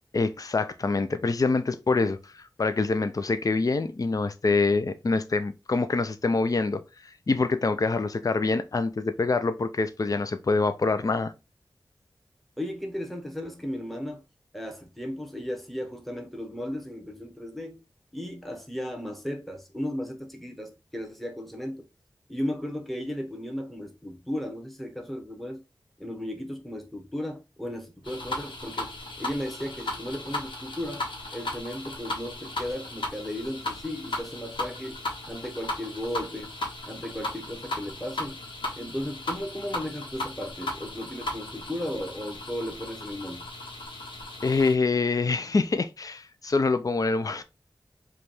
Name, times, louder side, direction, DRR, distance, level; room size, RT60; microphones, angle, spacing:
voice 1, 0.1-11.3 44.4-47.4, left 3 dB, 45° left, 0.4 m, -25 dB
voice 2, 12.6-14.2 14.5-17.8 18.1-21.8 22.3-25.6 26.0-28.9 29.2-31.0 31.3-35.0 35.3-36.5 36.9-38.4 38.8-43.5, equal, ahead, 1.0 m, -35 dB
sound 1, 28.0-44.8, left 2 dB, 80° left, 1.0 m, -36 dB
4.9 x 2.3 x 3.0 m
wide cardioid pair, 50°, 8 cm